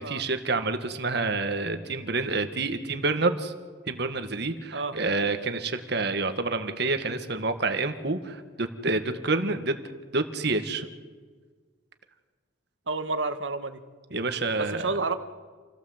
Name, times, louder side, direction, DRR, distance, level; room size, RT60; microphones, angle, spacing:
voice 1, 0.0-3.5 3.9-9.8 10.1-10.9 14.1-15.0, right 3 dB, 60° right, 8 dB, 1.8 m, -28 dB
voice 2, 12.9-13.8 14.6-15.1, right 3 dB, 85° right, 9 dB, 1.6 m, -30 dB
28.0 x 17.0 x 8.0 m, 1.5 s
head